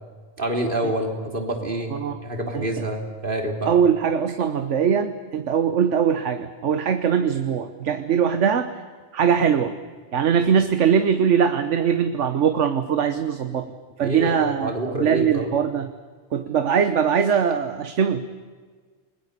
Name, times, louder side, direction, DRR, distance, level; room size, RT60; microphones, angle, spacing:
voice 1, 0.4-3.7 14.0-15.5, right 1 dB, 50° right, 2 dB, 3.6 m, -27 dB
voice 2, 1.9-2.2 2.5-2.9 3.6-8.7 9.1-9.8 10.1-13.7 14.0-15.9 16.3-18.3, right 7 dB, 85° right, 9 dB, 1.3 m, -21 dB
29.5 x 21.0 x 6.8 m, 1.5 s
omnidirectional pair, 1.2 m